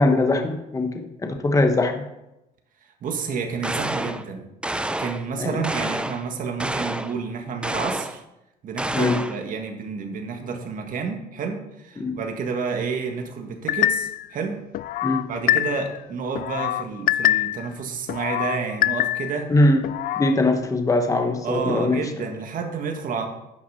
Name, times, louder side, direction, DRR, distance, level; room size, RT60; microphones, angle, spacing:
voice 1, 0.0-2.0 5.4-5.6 8.9-9.2 12.0-12.2 15.0-15.2 19.5-19.8 20.2-22.0, left 2 dB, 20° left, 5 dB, 1.1 m, -21 dB
voice 2, 3.0-4.5 5.0-8.2 8.6-14.6 15.3-19.5 21.4-23.3, right 5 dB, 55° right, 3 dB, 1.7 m, -30 dB
sound 1, 3.6-4.2 4.6-5.3 5.6-6.3 6.6-7.2 7.6-8.2 8.8-9.4, right 1 dB, 5° right, 0.5 m, -28 dB
sound 2, 13.7-14.3 14.7-16.0 16.3-17.7 18.1-19.4 19.8-20.3, left 13 dB, 60° left, 0.4 m, -24 dB
10.0 x 5.9 x 5.7 m, 0.92 s
cardioid pair, 110°, 17 cm